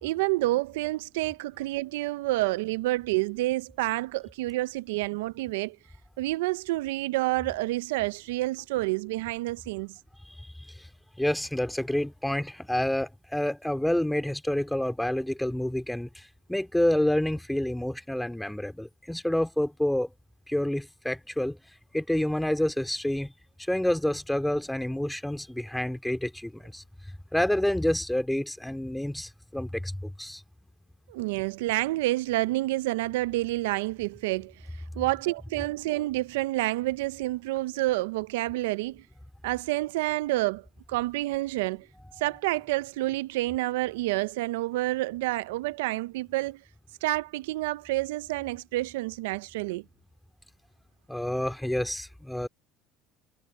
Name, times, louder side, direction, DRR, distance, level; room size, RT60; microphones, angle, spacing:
voice 1, 0.0-5.8 6.2-9.9 31.1-34.5 35.0-39.0 39.4-41.9 42.2-46.6 47.0-49.8, right 18 dB, 85° right, 0.5 m, -29 dB
voice 2, 11.2-16.2 16.5-20.1 20.5-21.6 21.9-23.3 23.7-26.8 27.3-30.4 51.1-52.5, left 1 dB, 5° left, 2.9 m, -28 dB
supercardioid pair, 90°, 0 cm